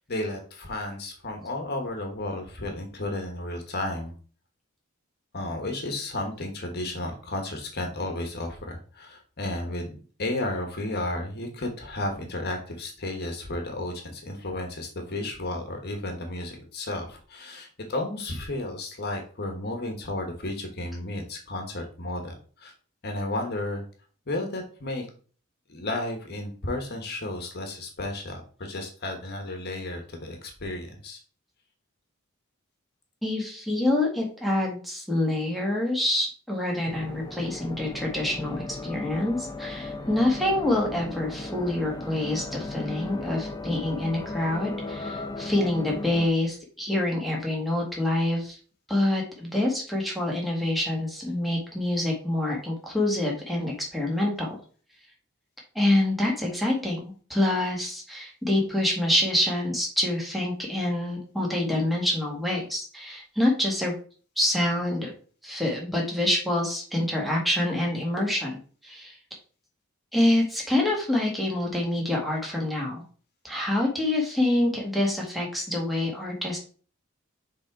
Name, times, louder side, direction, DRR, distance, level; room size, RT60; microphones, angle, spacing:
voice 1, 0.0-4.2 5.3-22.7 23.0-23.8 24.3-25.1 25.7-31.2, left 1 dB, 50° left, 3 dB, 1.3 m, -33 dB
voice 2, 33.2-48.6 48.9-54.6 55.8-63.9 64.4-65.1 65.4-69.1 70.1-73.0 73.4-76.6, left 1 dB, ahead, -2 dB, 1.8 m, -26 dB
sound 1, 36.9-46.3, left 2 dB, 20° left, 0.7 m, -36 dB
6.4 x 3.7 x 4.7 m, 0.40 s
head